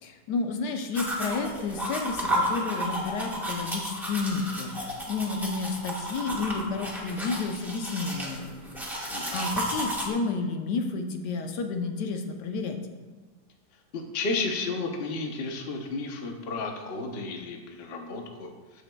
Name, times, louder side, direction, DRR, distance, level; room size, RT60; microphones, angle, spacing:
voice 1, 0.0-8.5 9.3-12.8, left 4 dB, 85° left, 5 dB, 1.4 m, -31 dB
sound 1, 0.9-10.1, equal, ahead, 0.9 m, -32 dB
voice 2, 9.1-9.4 13.9-18.8, left 3 dB, 45° left, 3 dB, 0.9 m, -33 dB
14.0 x 5.0 x 2.2 m, 1.3 s
omnidirectional pair, 1.8 m